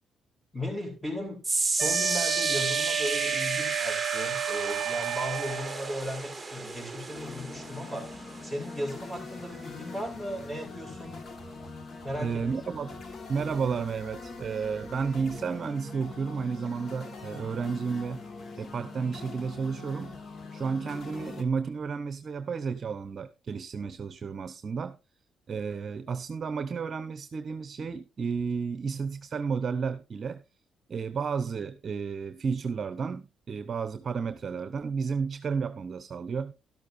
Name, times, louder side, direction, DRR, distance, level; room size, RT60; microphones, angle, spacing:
voice 1, 0.5-1.4 1.8-8.2 8.4-11.2 12.0-12.4, equal, 10° left, 5.2 m, -36 dB
sound 1, 1.4-13.8 14.1-14.4 15.1-15.2, right 3 dB, 15° right, 1.7 m, -34 dB
Wind instrument woodwind instrument, 1.8-6.0, right 12 dB, 80° right, 0.5 m, -32 dB
sound 2, 7.1-21.4, left 4 dB, 50° left, 1.8 m, -43 dB
voice 2, 12.2-13.0 13.3-18.2 18.6-20.2 20.5-25.0 25.5-30.4 30.9-36.5, right 5 dB, 45° right, 0.8 m, -32 dB
12.5 x 12.0 x 2.6 m
cardioid pair, 90°, 0 cm